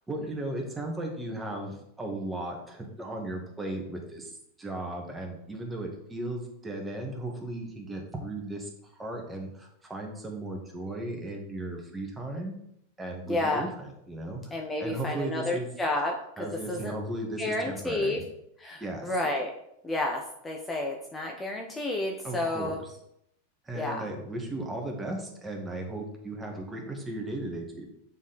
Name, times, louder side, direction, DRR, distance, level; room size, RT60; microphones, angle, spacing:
voice 1, 0.1-8.7 9.0-12.6 13.0-15.7 16.4-18.2 18.8-19.1 22.2-22.9 23.6-27.9, right 1 dB, 10° right, 1 dB, 1.6 m, -36 dB
voice 2, 13.3-13.7 14.5-16.9 17.4-18.2 18.6-19.5 19.8-22.8 23.7-24.1, left 2 dB, 15° left, 1 dB, 0.9 m, -31 dB
7.0 x 4.3 x 4.0 m, 0.77 s
hypercardioid pair, 110°, 0 cm